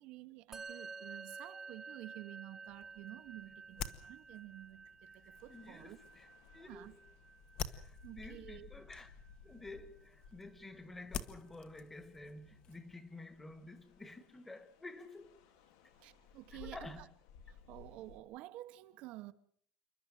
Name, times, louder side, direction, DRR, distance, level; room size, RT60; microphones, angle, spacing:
voice 1, 0.0-6.0 6.6-7.0 8.0-8.7 15.9-17.1 17.5-19.3, right 17 dB, 50° right, 1.0 m, -51 dB
Musical instrument, 0.5-10.1, right 4 dB, 15° right, 1.1 m, -53 dB
sound 1, 2.7-13.0, left 7 dB, 35° left, 1.3 m, -50 dB
voice 2, 5.2-6.3 6.5-6.9 7.7-9.2 9.4-15.4 16.5-17.1, left 2 dB, 10° left, 1.6 m, -51 dB
sound 2, 5.3-11.5 12.0-18.2, left 6 dB, 85° left, 3.4 m, -59 dB
28.0 x 12.5 x 9.0 m
cardioid pair, 180°, 3 cm